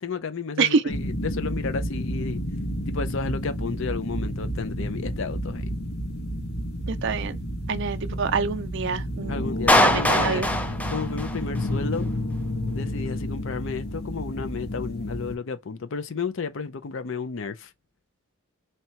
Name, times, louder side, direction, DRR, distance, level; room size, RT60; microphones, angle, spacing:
voice 1, 0.0-2.4 2.9-5.7 9.3-10.4 10.9-12.1 12.7-17.7, left 5 dB, 60° left, 0.5 m, -32 dB
sound 1, 0.9-15.4, equal, 80° left, 1.6 m, -30 dB
voice 2, 6.9-7.4 7.7-9.5 9.8-10.5, right 5 dB, 55° right, 0.5 m, -26 dB
Clapping, 9.7-11.7, left 1 dB, 5° left, 0.3 m, -22 dB
3.2 x 2.9 x 4.4 m
head